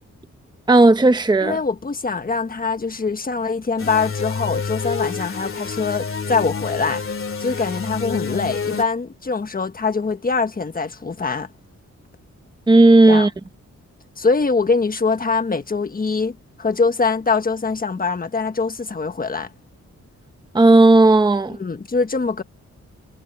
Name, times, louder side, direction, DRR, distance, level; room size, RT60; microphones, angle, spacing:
voice 1, 0.7-1.6 12.7-13.3 20.5-21.6, right 2 dB, 15° right, 0.9 m, -13 dB
voice 2, 1.4-7.0 7.4-11.5 13.1-13.3 14.2-19.5 21.5-22.4, left 4 dB, 30° left, 1.4 m, -23 dB
sound 1, 3.8-8.8, left 5 dB, 45° left, 2.6 m, -28 dB
wide cardioid pair, 135°, 30 cm